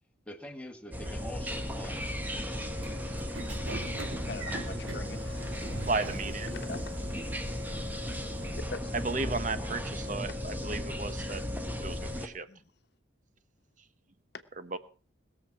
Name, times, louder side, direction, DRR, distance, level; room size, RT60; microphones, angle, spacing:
voice 1, 0.2-2.6, left 1 dB, 5° left, 3 dB, 1.7 m, -45 dB
sound 1, 0.9-12.3, equal, 10° right, 1.2 m, -35 dB
Train / Sliding door, 2.3-8.8, right 2 dB, 85° right, 2.8 m, -43 dB
voice 2, 4.1-5.6 6.5-6.8 8.5-8.9 12.5-12.6, left 3 dB, 55° left, 9 dB, 1.2 m, -43 dB
voice 3, 5.9-6.5 9.0-11.4 11.8-12.5 14.7-14.8, right 3 dB, 40° right, 12 dB, 1.1 m, -34 dB
20.5 x 7.4 x 5.9 m, 0.40 s
head